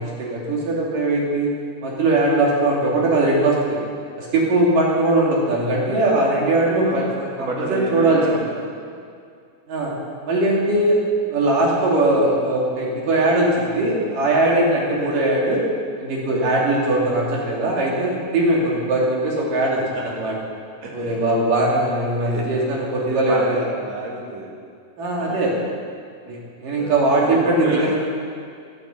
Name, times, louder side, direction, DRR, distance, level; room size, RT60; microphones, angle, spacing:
voice 1, 0.0-1.5 1.8-3.8 4.2-8.2 9.7-9.9 10.3-15.6 16.0-19.8 20.1-20.3 20.9-23.6 25.0-25.5 26.3-28.0, right 2 dB, 80° right, -3 dB, 4.5 m, -20 dB
voice 2, 7.4-8.4 8.8-9.0 16.4-16.5 19.8-20.1 20.8-21.3 22.2-22.5 23.1-24.5 25.1-25.5 26.8-27.0 27.2-27.9, right 2 dB, 55° right, -1 dB, 3.3 m, -30 dB
12.0 x 11.5 x 8.4 m, 2.2 s
omnidirectional pair, 3.7 m